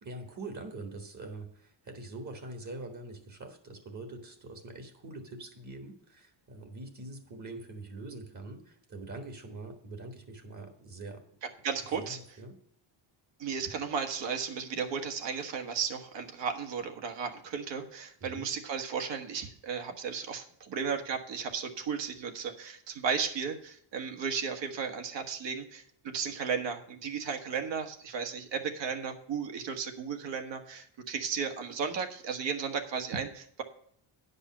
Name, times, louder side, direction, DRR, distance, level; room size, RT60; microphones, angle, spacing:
voice 1, 0.0-11.2 12.0-12.6 18.2-18.5, right 2 dB, 35° right, 6 dB, 1.6 m, -44 dB
voice 2, 11.6-12.4 13.4-33.6, right 6 dB, 60° right, 6 dB, 1.6 m, -34 dB
10.0 x 5.5 x 7.2 m, 0.66 s
cardioid pair, 140°, 49 cm